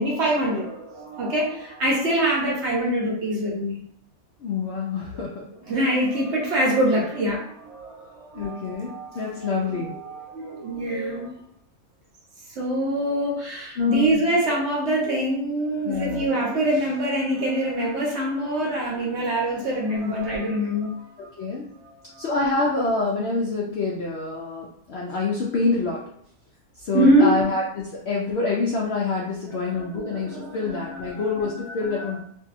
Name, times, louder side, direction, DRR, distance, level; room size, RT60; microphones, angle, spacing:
voice 1, 0.0-3.8 5.7-11.3 12.6-21.3 21.8-22.3 26.9-27.4 29.6-32.2, right 1 dB, 55° right, -3 dB, 0.9 m, -25 dB
voice 2, 4.4-5.4 8.3-10.0 13.8-14.2 15.8-16.3 19.9-20.4 21.4-21.7 22.2-26.0 26.8-32.2, left 3 dB, 70° left, -3 dB, 0.6 m, -26 dB
2.6 x 2.6 x 2.4 m, 0.67 s
omnidirectional pair, 1.6 m